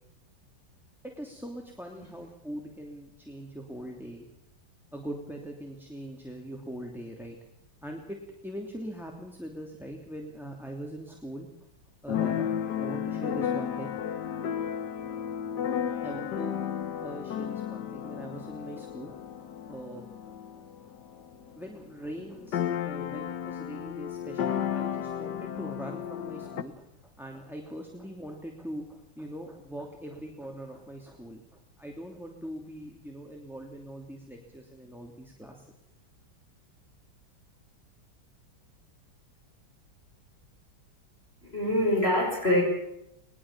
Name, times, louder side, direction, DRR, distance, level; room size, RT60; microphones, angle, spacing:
voice 1, 1.0-4.3 4.9-7.4 7.8-8.2 8.4-11.5 12.0-14.2 16.0-20.4 21.6-35.7, right 1 dB, ahead, 1 dB, 2.7 m, -42 dB
Keyboard (musical), 12.1-21.6 21.9-22.0 22.2-26.6, left 9 dB, 60° left, 1.6 m, -33 dB
voice 2, 41.4-42.6, left 1 dB, 30° left, -1 dB, 6.5 m, -24 dB
21.5 x 20.5 x 7.4 m, 0.83 s
omnidirectional pair, 2.1 m